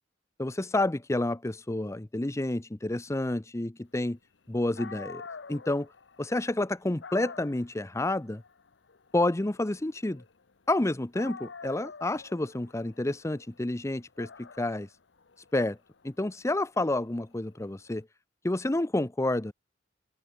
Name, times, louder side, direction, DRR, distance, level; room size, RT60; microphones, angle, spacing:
voice 1, 0.4-4.2 4.5-5.2 5.5-5.9 6.2-8.4 9.1-10.2 10.7-14.9 15.5-15.8 16.0-18.1 18.4-19.5, left 2 dB, 15° left, 0.6 m, -29 dB
Dog, 4.5-4.6 4.8-10.8 11.1-17.9, left 5 dB, 85° left, 0.9 m, -48 dB
open air
head